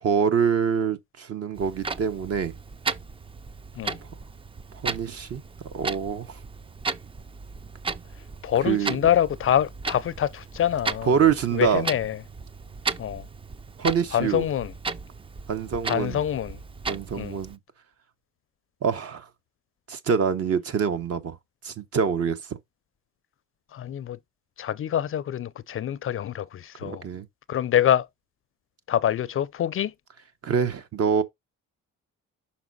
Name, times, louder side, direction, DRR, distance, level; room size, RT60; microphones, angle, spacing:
voice 1, 0.0-2.5 4.8-5.4 5.7-6.4 8.6-9.0 11.0-11.8 13.8-14.5 15.5-16.2 16.9-17.6 18.8-19.3 19.9-21.4 21.6-22.4 26.8-27.3 30.4-31.2, right 7 dB, 55° right, 1.0 m, -25 dB
Clock, 1.5-17.6, right 4 dB, 20° right, 0.4 m, -35 dB
voice 2, 8.4-11.1 11.5-12.2 13.0-13.2 14.1-14.7 15.9-16.6 17.2-17.3 23.7-24.2 24.6-27.1 27.5-28.1 28.9-29.9, left 10 dB, 45° left, 0.4 m, -25 dB
5.9 x 4.2 x 3.9 m
cardioid pair, 90°, 30 cm